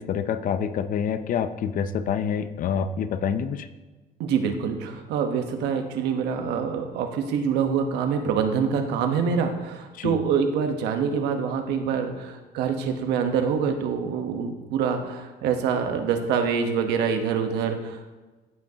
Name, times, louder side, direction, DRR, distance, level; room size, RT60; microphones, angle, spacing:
voice 1, 0.0-3.7 9.9-10.2, left 7 dB, 55° left, 12 dB, 0.6 m, -27 dB
voice 2, 4.2-18.1, right 6 dB, 85° right, 6 dB, 1.1 m, -25 dB
15.5 x 5.3 x 2.8 m, 1.2 s
cardioid pair, 110°, 17 cm